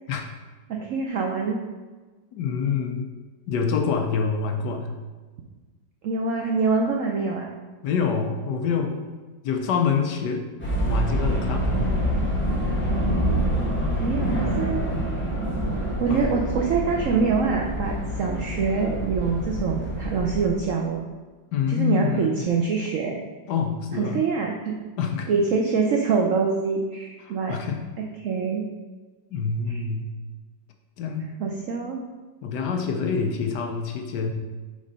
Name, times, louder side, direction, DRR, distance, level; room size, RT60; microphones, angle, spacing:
voice 1, 0.7-1.6 6.0-7.5 14.0-14.9 16.0-21.0 21.7-23.2 24.0-24.8 25.3-27.5 28.0-28.7 29.7-29.8 31.4-32.0, right 5 dB, 80° right, 1 dB, 0.7 m, -25 dB
voice 2, 2.3-3.1 3.5-4.9 7.8-9.1 9.4-10.5 10.9-11.8 14.5-14.6 16.1-16.3 21.5-22.4 23.5-24.2 25.0-25.3 27.2-27.8 29.3-30.1 31.0-31.3 32.4-34.3, left 6 dB, 70° left, 4 dB, 1.2 m, -26 dB
sound 1, 10.6-20.4, equal, 5° left, 1.1 m, -26 dB
5.2 x 3.9 x 5.2 m, 1.3 s
omnidirectional pair, 2.1 m